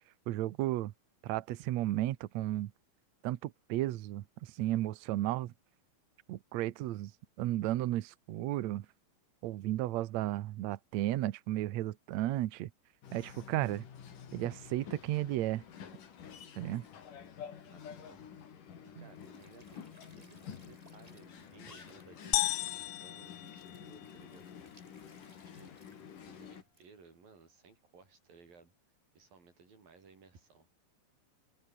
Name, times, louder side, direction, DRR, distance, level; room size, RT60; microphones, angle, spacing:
voice 1, 0.3-0.9 1.2-2.7 3.2-5.5 6.3-7.1 7.4-8.9 9.4-12.7 13.1-13.8 14.3-15.6 16.6-16.9 19.0-19.1, right 15 dB, 90° right, 1.5 m, -34 dB
sound 1, 13.0-26.6, left 8 dB, 60° left, 4.2 m, -50 dB
voice 2, 17.6-18.2 18.8-24.5 25.4-25.7 26.3-28.7 29.1-30.7, right 5 dB, 65° right, 7.9 m, -59 dB
Squeak / Sink (filling or washing) / Trickle dribble, 19.0-26.9, right 1 dB, 10° right, 4.5 m, -64 dB
sound 2, 22.3-24.3, left 17 dB, 75° left, 1.9 m, -34 dB
open air
omnidirectional pair, 4.5 m